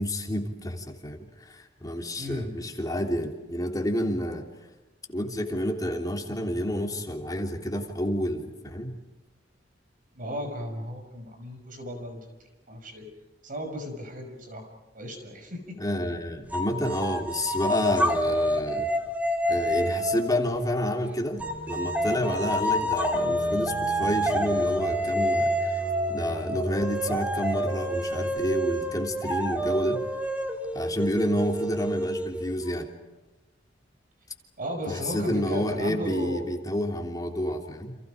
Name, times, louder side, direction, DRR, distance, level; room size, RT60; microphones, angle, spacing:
voice 1, 0.0-4.5 5.1-9.0 15.8-18.9 19.5-25.8 26.1-30.1 30.7-32.9 34.9-38.0, equal, 20° left, 3 dB, 3.2 m, -29 dB
voice 2, 2.2-2.5 10.2-12.2 12.7-13.1 13.4-15.8 34.6-36.5, equal, 50° right, 5 dB, 5.8 m, -35 dB
sound 1, 16.5-20.4 21.4-32.7, equal, 10° right, 2.6 m, -28 dB
sound 2, 21.4-28.4, right 2 dB, 65° right, 6.8 m, -39 dB
30.0 x 28.5 x 5.1 m, 1.1 s
head